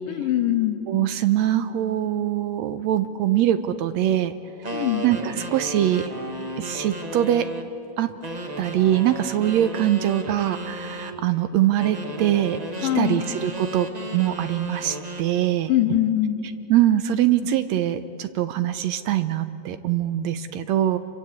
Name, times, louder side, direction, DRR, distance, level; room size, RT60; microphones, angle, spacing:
voice 1, 0.1-0.8 4.7-5.0 12.8-13.2 15.7-16.4, left 12 dB, 85° left, 7 dB, 3.0 m, -22 dB
voice 2, 0.9-4.3 5.0-6.1 6.6-7.5 8.0-8.2 8.6-15.7 16.7-21.0, right 12 dB, 75° right, 11 dB, 1.7 m, -23 dB
sound 1, 4.6-7.7 8.2-11.2 11.8-15.3, right 1 dB, 35° right, 0.6 m, -34 dB
28.0 x 23.5 x 8.4 m, 2.8 s
omnidirectional pair, 3.8 m